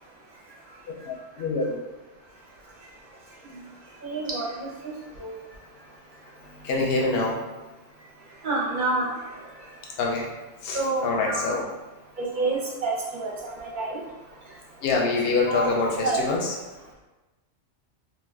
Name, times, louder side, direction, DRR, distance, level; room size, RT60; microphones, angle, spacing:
voice 1, 1.1-1.8 6.6-7.4 10.0-10.3 10.6-11.6 14.8-16.5, left 3 dB, 60° left, -1 dB, 0.7 m, -25 dB
voice 2, 4.0-4.5 5.2-5.3 8.4-9.1 10.7-11.4 12.2-12.9 13.2-13.3 13.6-14.0 15.5-15.7 16.0-16.2, right 3 dB, 50° right, -4 dB, 0.7 m, -27 dB
2.4 x 2.2 x 3.3 m, 1.1 s
omnidirectional pair, 1.3 m